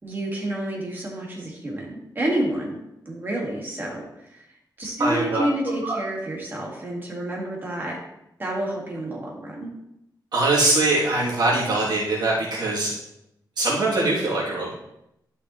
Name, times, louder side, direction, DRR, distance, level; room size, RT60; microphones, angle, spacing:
voice 1, 0.0-2.8 3.1-4.5 4.8-8.0 8.4-9.7, right 1 dB, 25° right, -2 dB, 2.0 m, -29 dB
voice 2, 5.0-5.4 5.8-6.0 10.3-12.9 13.6-14.7, right 2 dB, 65° right, -7 dB, 2.8 m, -22 dB
11.5 x 5.7 x 3.1 m, 0.82 s
wide cardioid pair, 180°, 8 cm